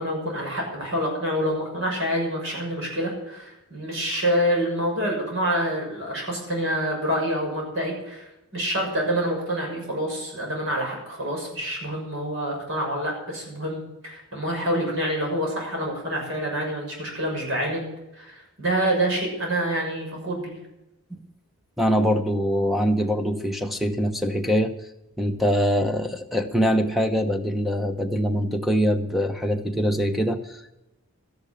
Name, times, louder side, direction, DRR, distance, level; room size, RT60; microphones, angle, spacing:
voice 1, 0.0-8.2 8.5-17.9 18.2-20.6, equal, 60° right, -1 dB, 6.5 m, -27 dB
voice 2, 21.8-24.7 25.2-30.7, equal, ahead, 8 dB, 0.9 m, -23 dB
13.5 x 10.5 x 7.5 m, 0.95 s
head